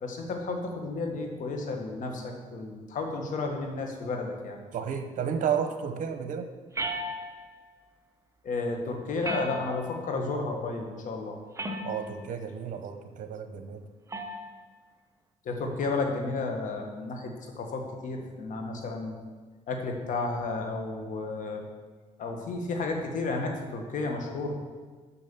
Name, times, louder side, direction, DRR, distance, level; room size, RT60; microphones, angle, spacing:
voice 1, 0.0-4.6 8.4-11.4 15.5-17.3 17.6-19.2 19.7-21.6 22.2-24.6, left 3 dB, 65° left, 3 dB, 1.7 m, -32 dB
voice 2, 4.7-6.5 11.8-13.8, right 7 dB, 65° right, 8 dB, 0.9 m, -32 dB
sound 1, 6.7-7.6 9.2-10.1 11.6-12.2 14.1-14.5, right 1 dB, 20° right, 1.0 m, -35 dB
7.1 x 6.2 x 7.1 m, 1.4 s
cardioid pair, 90°, 14 cm